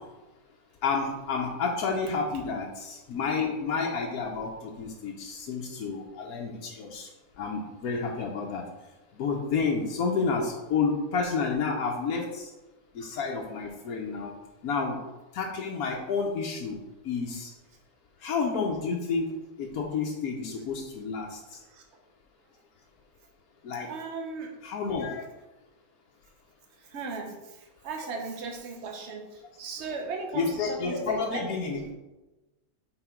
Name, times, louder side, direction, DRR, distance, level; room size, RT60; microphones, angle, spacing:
voice 1, 0.8-7.1 7.4-8.6 9.2-12.5 12.9-14.3 14.6-15.0 15.3-16.8 17.0-17.5 18.2-19.3 19.6-21.4 23.6-23.9 24.6-25.2 28.0-28.1 30.3-31.9, left 5 dB, 85° left, -1 dB, 1.3 m, -30 dB
voice 2, 23.9-24.5 26.9-27.4 27.8-29.2 29.6-31.5, right 4 dB, 55° right, 2 dB, 1.2 m, -36 dB
5.9 x 4.4 x 4.5 m, 1.1 s
omnidirectional pair, 1.5 m